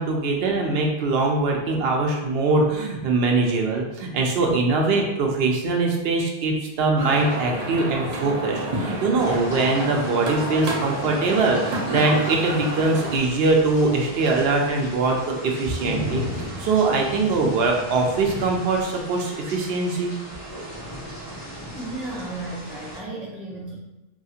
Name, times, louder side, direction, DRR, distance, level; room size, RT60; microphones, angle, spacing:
voice 1, 0.0-20.1, right 3 dB, 75° right, 1 dB, 0.8 m, -22 dB
sound 1, 7.0-13.2, right 1 dB, 45° right, 0.6 m, -29 dB
sound 2, 9.2-23.0, equal, 25° left, 1.4 m, -37 dB
voice 2, 9.2-9.5 20.6-23.8, right 2 dB, ahead, -5 dB, 0.4 m, -36 dB
3.0 x 2.7 x 2.4 m, 0.99 s
omnidirectional pair, 1.0 m